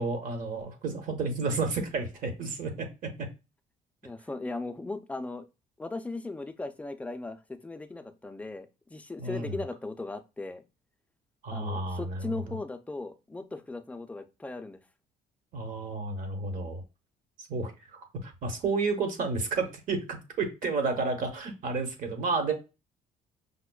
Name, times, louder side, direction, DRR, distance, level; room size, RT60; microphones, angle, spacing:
voice 1, 0.0-2.9 3.2-3.3 9.2-9.5 11.4-12.3 15.5-16.8 17.4-22.5, right 3 dB, 55° right, 6 dB, 0.9 m, -31 dB
voice 2, 4.0-5.4 5.8-10.6 11.5-14.8, left 2 dB, 10° left, 8 dB, 0.3 m, -38 dB
5.0 x 2.1 x 2.2 m, 0.28 s
cardioid pair, 110°, 17 cm